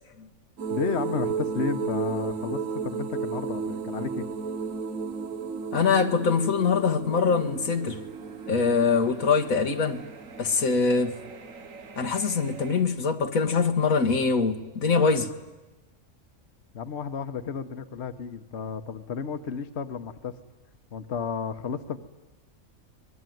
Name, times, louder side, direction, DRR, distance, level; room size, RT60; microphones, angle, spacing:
sound 1, 0.6-12.8, right 5 dB, 75° right, 1.8 m, -34 dB
voice 1, 0.7-4.3 16.7-20.3 20.9-22.0, left 6 dB, 55° left, 1.3 m, -32 dB
voice 2, 5.7-8.0 8.5-10.0 10.4-11.2 12.0-15.3, left 5 dB, 90° left, 1.9 m, -23 dB
25.5 x 21.5 x 9.3 m
omnidirectional pair, 1.4 m